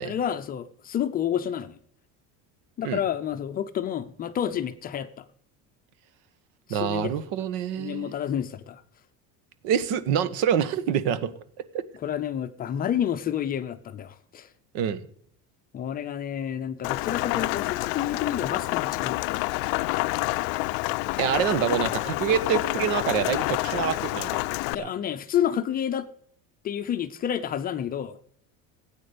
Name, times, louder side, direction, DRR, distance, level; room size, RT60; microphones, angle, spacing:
voice 1, 0.0-1.8 2.8-5.3 6.7-7.1 7.8-8.8 12.0-14.5 15.7-19.4 24.7-26.1 26.6-28.2, left 9 dB, 25° left, 0.5 m, -29 dB
voice 2, 6.7-8.1 9.6-11.3 14.7-15.0 21.2-24.4 24.8-24.9, right 8 dB, 75° right, 1.4 m, -26 dB
Rain, 16.8-24.7, left 23 dB, 75° left, 0.5 m, -28 dB
17.0 x 8.8 x 5.1 m
cardioid pair, 180°, 35 cm